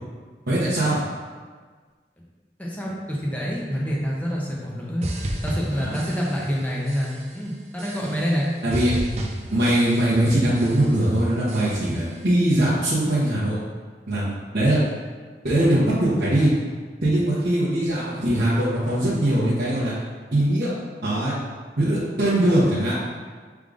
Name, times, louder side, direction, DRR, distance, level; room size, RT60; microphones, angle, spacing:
voice 1, 0.5-1.0 5.7-6.0 8.6-8.9 9.5-13.6 14.1-14.8 15.4-16.5 17.0-19.9 20.3-20.7 21.0-21.3 21.8-22.9, right 1 dB, 60° right, -11 dB, 1.0 m, -21 dB
voice 2, 2.6-8.5, equal, 10° left, -4 dB, 0.6 m, -27 dB
sound 1, 5.0-6.6 6.9-7.4 7.8-8.4 8.7-10.3 10.6-11.1 11.5-12.1, right 1 dB, 40° right, 0.4 m, -32 dB
5.0 x 3.6 x 2.5 m, 1.5 s
head